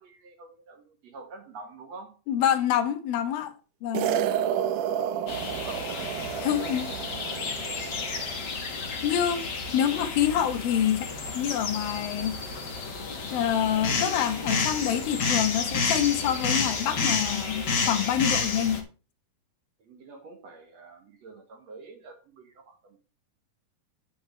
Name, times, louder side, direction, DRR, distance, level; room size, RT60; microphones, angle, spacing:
voice 1, 0.0-2.2 5.5-6.7 19.8-23.0, right 3 dB, 55° right, 2.6 m, -47 dB
voice 2, 2.3-3.5 3.8-4.1 6.4-6.9 9.0-9.4 9.7-12.4 13.3-18.8, left 10 dB, 80° left, 2.8 m, -26 dB
sound 1, 3.9-8.4, right 9 dB, 75° right, 2.0 m, -30 dB
sound 2, 5.3-18.8, left 4 dB, 55° left, 1.2 m, -31 dB
9.2 x 8.6 x 3.2 m
omnidirectional pair, 4.2 m